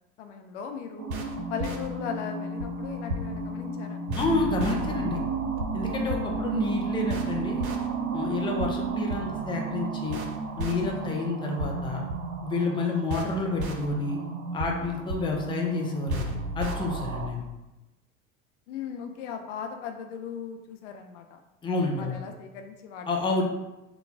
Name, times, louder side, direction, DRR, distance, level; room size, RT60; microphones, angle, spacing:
voice 1, 0.2-1.2 1.5-4.0 18.7-21.4 22.0-23.1, left 7 dB, 60° left, 5 dB, 0.5 m, -37 dB
sound 1, 1.0-17.3, right 3 dB, 80° right, 0.6 m, -32 dB
voice 2, 4.1-5.2 5.7-7.7 8.1-10.2 10.6-12.0 12.4-14.2 14.5-17.4 21.6-22.2 23.1-23.4, left 3 dB, 10° left, 0 dB, 0.5 m, -29 dB
4.0 x 2.2 x 3.4 m, 0.97 s
figure-of-eight pair, 75°, 42 cm